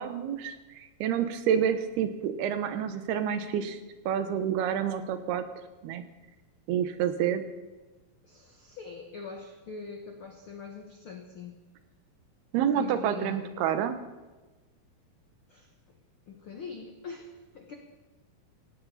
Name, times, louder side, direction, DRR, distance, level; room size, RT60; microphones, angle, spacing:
voice 1, 0.0-3.8 4.1-5.4 5.8-6.0 6.7-7.4 12.5-14.0, right 9 dB, 90° right, 9 dB, 3.1 m, -28 dB
voice 2, 8.2-11.6 12.7-13.4 15.5-16.0 16.3-17.7, left 5 dB, 75° left, 4 dB, 1.2 m, -43 dB
17.5 x 17.0 x 4.2 m, 1.2 s
omnidirectional pair, 4.4 m